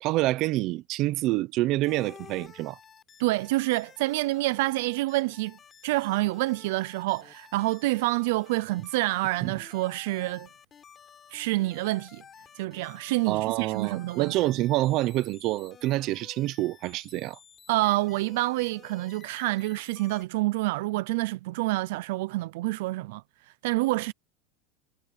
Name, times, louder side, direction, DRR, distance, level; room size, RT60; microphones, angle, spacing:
voice 1, 0.0-2.8 9.4-9.5 13.3-17.4, right 17 dB, 45° right, 0.9 m, -27 dB
sound 1, 1.8-20.3, left 7 dB, 25° left, 7.0 m, -52 dB
voice 2, 3.2-5.6 5.8-10.5 11.3-12.2 12.6-14.3 17.7-23.2 23.6-24.1, right 20 dB, 75° right, 0.6 m, -27 dB
supercardioid pair, 150°, 0 cm